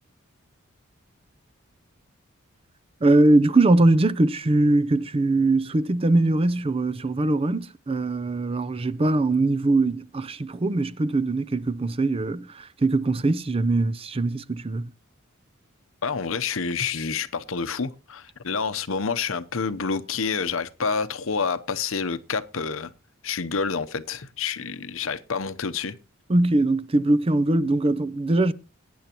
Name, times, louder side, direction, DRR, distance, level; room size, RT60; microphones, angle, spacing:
voice 1, 3.0-14.9 26.3-28.5, right 2 dB, 25° right, 0.5 m, -21 dB
voice 2, 16.0-22.9 23.2-26.0, left 5 dB, 70° left, 0.8 m, -28 dB
19.0 x 9.4 x 2.9 m
head